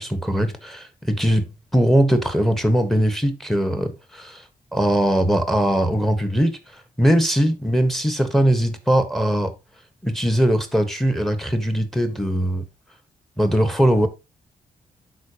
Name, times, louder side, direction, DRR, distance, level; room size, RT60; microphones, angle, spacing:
voice 1, 0.0-9.5 10.0-12.6 13.4-14.1, equal, ahead, 1.3 m, -20 dB
12.0 x 4.7 x 2.9 m
wide cardioid pair, 145°, 15 cm